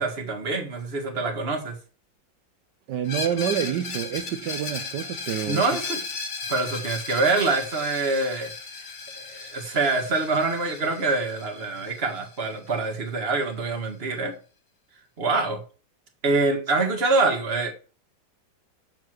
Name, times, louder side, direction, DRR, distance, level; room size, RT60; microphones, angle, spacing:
voice 1, 0.0-1.8 5.5-6.0 6.5-8.5 9.3-14.3 15.2-15.6 16.2-17.7, right 3 dB, 35° right, 1.8 m, -25 dB
voice 2, 2.9-5.6, right 10 dB, 70° right, 1.3 m, -28 dB
Screech, 3.0-12.7, left 4 dB, 40° left, 1.5 m, -36 dB
7.8 x 7.0 x 6.1 m
omnidirectional pair, 2.1 m